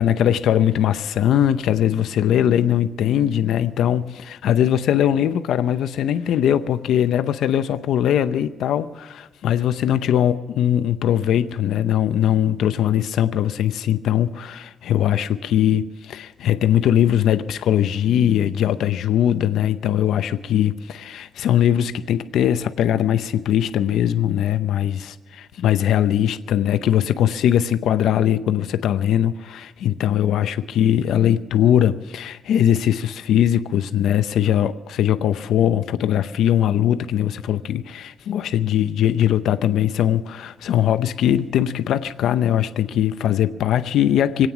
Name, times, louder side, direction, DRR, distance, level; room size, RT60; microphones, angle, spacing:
voice 1, 0.0-44.5, left 10 dB, 85° left, 0.7 m, -20 dB
25.0 x 9.1 x 6.0 m
cardioid pair, 130°, 0 cm